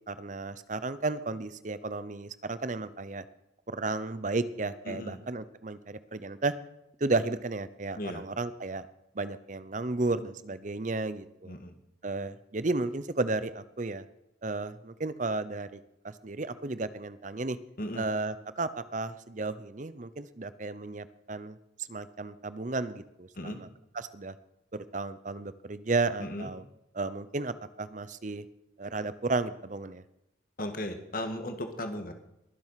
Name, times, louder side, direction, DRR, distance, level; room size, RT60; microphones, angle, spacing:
voice 1, 0.1-3.2 3.7-6.5 7.0-8.9 9.1-11.6 12.0-14.0 14.4-15.8 16.0-17.6 18.0-21.6 21.9-23.7 23.9-24.4 24.7-26.6 26.9-28.4 28.8-30.0, right 3 dB, 40° right, 14 dB, 0.7 m, -33 dB
voice 2, 4.8-5.2 7.9-8.2 11.4-11.7 17.8-18.0 23.3-23.6 26.2-26.5 30.6-32.1, left 1 dB, 45° left, 6 dB, 1.7 m, -36 dB
21.5 x 7.7 x 5.8 m, 0.87 s
head